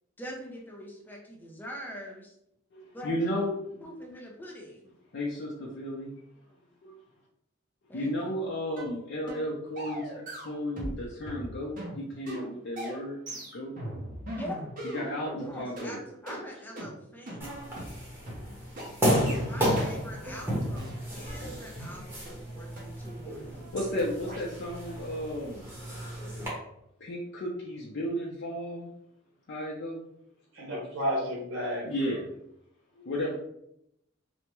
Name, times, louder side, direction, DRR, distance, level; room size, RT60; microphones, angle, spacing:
voice 1, 0.2-2.3 2.9-3.2 3.8-4.9 7.9-8.3 14.4-14.7 15.4-17.5 19.4-23.7, equal, 10° left, -1 dB, 0.6 m, -43 dB
voice 2, 2.7-3.8 5.1-6.1 6.8-6.9 7.9-13.2 13.5-13.7 14.9-16.0 23.7-25.7 27.0-28.9 29.5-30.0 31.8-32.3 33.0-33.3, equal, 60° left, -4 dB, 0.5 m, -33 dB
sound 1, 8.8-8.9 9.3-9.5 9.8-11.0 11.2-15.4 15.8-15.9 16.3-16.4 16.8-16.9 17.3-17.4 17.8-17.9 18.3-18.4 18.8-18.9 19.3-19.4 19.8-19.9 20.3-20.4 20.7-21.9 22.3-22.4 22.8-22.9 23.3-23.4 23.8-23.9 24.3-24.4, right 1 dB, 45° right, 0.8 m, -39 dB
sound 2, 17.4-26.5, equal, 10° right, 0.9 m, -32 dB
voice 3, 30.5-32.2, equal, 85° right, -3 dB, 0.9 m, -32 dB
3.3 x 2.0 x 3.0 m, 0.78 s
head